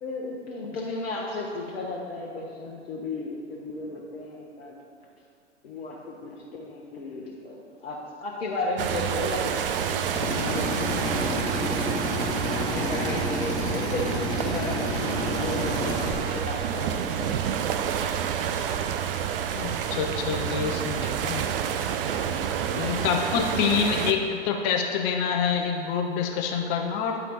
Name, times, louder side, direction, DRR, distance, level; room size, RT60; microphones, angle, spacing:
voice 1, 0.0-4.7 5.6-11.9 12.6-14.7 15.2-17.7 22.2-22.6, left 2 dB, 60° left, -3 dB, 0.9 m, -35 dB
sound 1, 8.8-24.1, right 8 dB, 55° right, 0.5 m, -29 dB
Drill, 10.1-16.1, left 1 dB, 10° left, 1.5 m, -30 dB
voice 2, 19.5-21.4 22.7-27.2, left 6 dB, 35° left, 3 dB, 0.6 m, -27 dB
9.5 x 4.3 x 4.0 m, 2.4 s
figure-of-eight pair, 95°, 35 cm